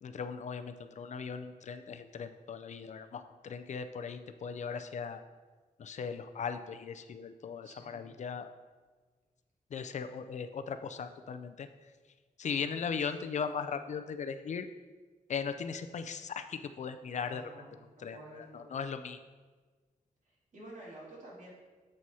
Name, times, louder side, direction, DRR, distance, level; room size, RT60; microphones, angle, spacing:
voice 1, 0.0-5.2 5.8-8.5 9.7-11.7 12.4-14.7 15.3-17.4 18.0-19.2, left 6 dB, 55° left, 9 dB, 0.4 m, -38 dB
voice 2, 7.6-8.1 12.4-13.2 17.2-18.8 20.2-21.5, right 1 dB, 60° right, -5 dB, 2.2 m, -51 dB
7.5 x 4.2 x 4.7 m, 1.4 s
wide cardioid pair, 165°, 15 cm